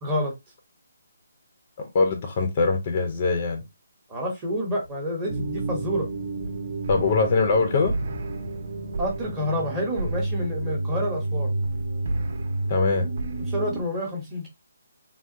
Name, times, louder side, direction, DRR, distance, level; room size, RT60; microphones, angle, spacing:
voice 1, 0.0-0.3 4.1-6.1 9.0-11.5 13.5-14.5, equal, 15° right, 0.8 m, -28 dB
voice 2, 1.8-3.6 6.9-7.9 12.7-13.1, left 4 dB, 25° left, 0.4 m, -22 dB
sound 1, 5.3-13.8, right 2 dB, 45° right, 0.7 m, -30 dB
3.5 x 2.1 x 2.6 m
hypercardioid pair, 170°, 0 cm